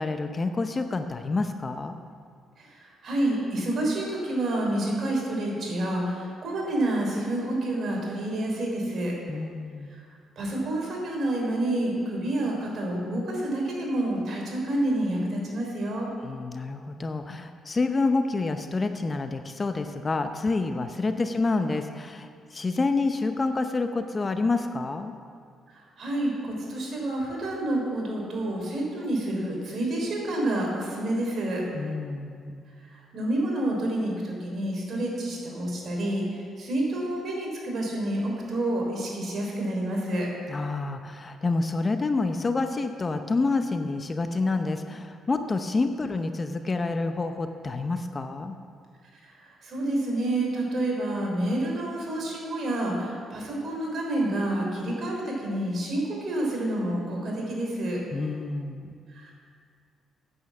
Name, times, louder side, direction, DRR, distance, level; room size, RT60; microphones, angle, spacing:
voice 1, 0.0-2.0 9.3-9.9 16.2-25.1 31.7-32.6 40.5-48.5 58.1-59.0, left 3 dB, 30° left, 7 dB, 0.7 m, -28 dB
voice 2, 2.6-9.2 9.9-10.0 10.4-16.1 21.1-21.3 26.0-31.6 32.9-36.2 36.6-40.3 49.4-58.0 59.1-59.3, right 1 dB, 55° right, -1 dB, 3.6 m, -28 dB
9.5 x 8.1 x 7.2 m, 2.2 s
cardioid pair, 90°, 0 cm